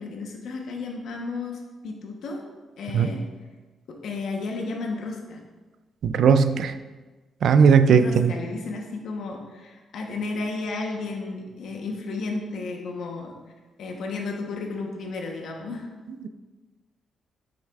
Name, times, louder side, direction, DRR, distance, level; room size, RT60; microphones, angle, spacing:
voice 1, 0.0-2.4 2.8-3.2 4.0-5.4 7.9-13.3 13.8-15.9, left 3 dB, 70° left, 1 dB, 1.0 m, -33 dB
voice 2, 6.0-6.7 7.4-8.3, right 6 dB, 65° right, 11 dB, 0.3 m, -17 dB
7.4 x 6.4 x 2.4 m, 1.2 s
cardioid pair, 145°, 0 cm